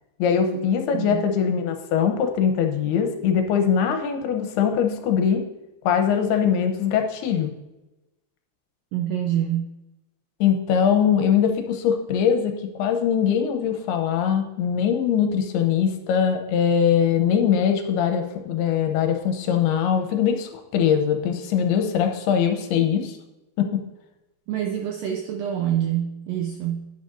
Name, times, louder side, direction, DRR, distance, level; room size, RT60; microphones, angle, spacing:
voice 1, 0.2-5.4 5.8-7.5 10.4-23.2 23.6-23.8, left 8 dB, 80° left, 5 dB, 2.7 m, -22 dB
voice 2, 8.9-9.7 24.5-26.9, right 10 dB, 85° right, 3 dB, 2.0 m, -26 dB
10.5 x 9.2 x 2.6 m, 0.97 s
omnidirectional pair, 4.8 m